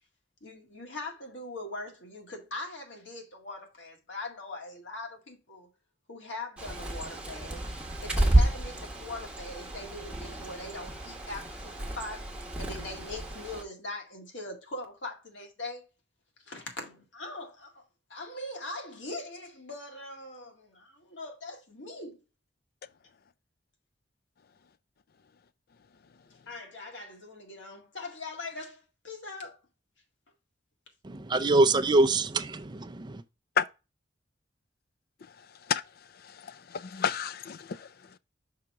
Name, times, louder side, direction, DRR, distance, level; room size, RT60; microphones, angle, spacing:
voice 1, 0.4-5.7 6.1-7.6 8.0-12.3 12.6-15.9 16.4-17.8 18.1-22.2 26.5-29.6, left 2 dB, 85° left, 2.0 m, -41 dB
Bird, 6.6-13.6, right 1 dB, 5° right, 1.2 m, -30 dB
voice 2, 31.0-33.2, right 2 dB, 25° right, 0.5 m, -24 dB
voice 3, 36.2-37.9, left 7 dB, 55° left, 0.4 m, -30 dB
5.7 x 4.0 x 4.6 m
head